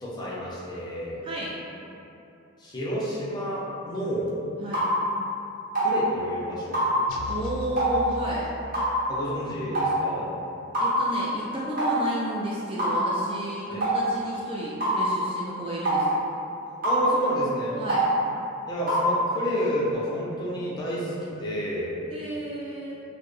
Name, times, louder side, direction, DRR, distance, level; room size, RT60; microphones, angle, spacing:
voice 1, 0.0-1.2 2.6-4.3 5.7-6.8 9.1-10.3 13.7-13.9 16.8-17.8 18.7-21.9, equal, 20° left, -8 dB, 0.6 m, -30 dB
voice 2, 1.2-1.5 4.6-4.8 7.3-8.5 10.8-16.2 17.8-18.1 22.1-23.0, right 1 dB, 25° right, -6 dB, 0.3 m, -32 dB
sound 1, 4.7-4.9 5.7-5.9 6.7-6.9 7.8-7.9 8.7-8.9 9.7-9.9 10.7-10.9 11.8-12.0 12.8-13.0 13.8-14.0 14.8-15.0 15.8-16.0 16.8-17.0 17.9-18.1 18.9-19.1, right 2 dB, 45° right, 1.0 m, -24 dB
sound 2, 7.1-9.0, left 1 dB, 85° left, 0.3 m, -38 dB
4.4 x 2.1 x 3.1 m, 2.8 s
head